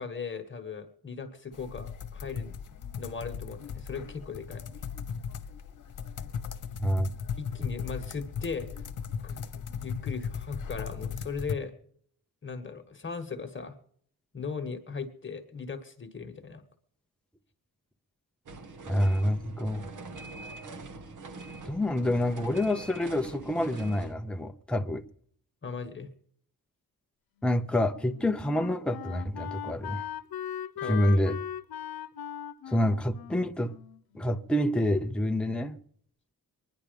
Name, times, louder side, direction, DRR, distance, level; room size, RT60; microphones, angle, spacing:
voice 1, 0.0-2.5 3.0-4.9 7.4-8.7 9.2-9.4 9.8-11.7 12.4-13.7 14.3-16.6 25.6-26.1 30.8-31.2, left 5 dB, 35° left, 1.4 m, -38 dB
sound 1, 1.5-11.5, left 7 dB, 60° left, 1.3 m, -37 dB
voice 2, 6.8-7.1 18.9-19.9 21.7-25.0 27.4-30.0 30.9-31.4 32.7-33.7 34.1-35.8, left 1 dB, 5° left, 0.7 m, -27 dB
sound 2, 18.5-24.1, right 3 dB, 60° right, 1.7 m, -43 dB
Wind instrument woodwind instrument, 27.4-34.7, left 9 dB, 85° left, 0.8 m, -40 dB
22.5 x 10.5 x 5.2 m
wide cardioid pair, 140°, 35 cm